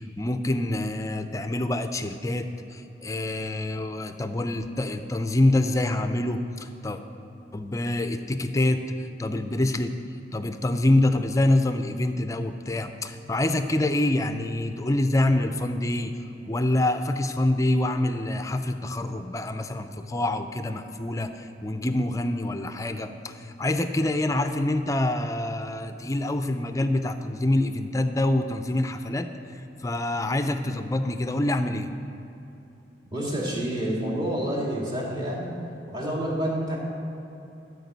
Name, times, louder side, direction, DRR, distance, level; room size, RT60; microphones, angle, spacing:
voice 1, 0.2-7.0 7.5-8.8 9.2-9.9 10.3-16.1 16.5-31.9, left 1 dB, 20° left, 8 dB, 0.5 m, -26 dB
voice 2, 33.1-35.5 35.9-36.8, right 1 dB, 25° right, -5 dB, 2.4 m, -28 dB
13.5 x 5.2 x 8.1 m, 2.9 s
head